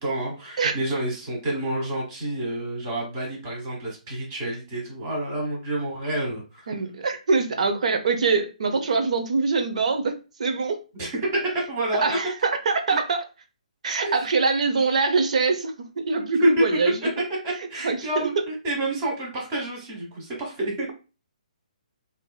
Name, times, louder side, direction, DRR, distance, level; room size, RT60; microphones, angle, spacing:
voice 1, 0.0-6.7 11.0-12.0 14.0-14.1 16.1-16.8 17.4-20.9, right 1 dB, 20° right, 1.2 m, -28 dB
voice 2, 6.7-10.8 12.0-13.2 13.8-17.0 17.8-18.3, right 4 dB, 55° right, 0.6 m, -24 dB
3.5 x 2.6 x 2.2 m
hypercardioid pair, 170°, 4 cm